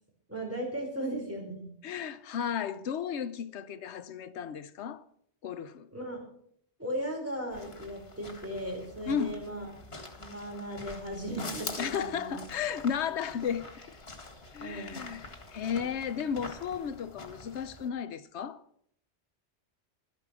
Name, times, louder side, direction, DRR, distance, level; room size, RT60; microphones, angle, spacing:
voice 1, 0.3-1.7 5.9-6.2 6.8-9.7 9.9-12.4 14.6-15.0, right 1 dB, 10° right, 4.6 m, -37 dB
voice 2, 1.8-5.0 5.4-5.9 9.1-9.4 11.8-13.9 14.5-18.6, left 7 dB, 90° left, 1.0 m, -34 dB
sound 1, 7.5-17.9, left 3 dB, 65° left, 2.2 m, -45 dB
13.0 x 10.5 x 6.1 m
omnidirectional pair, 1.1 m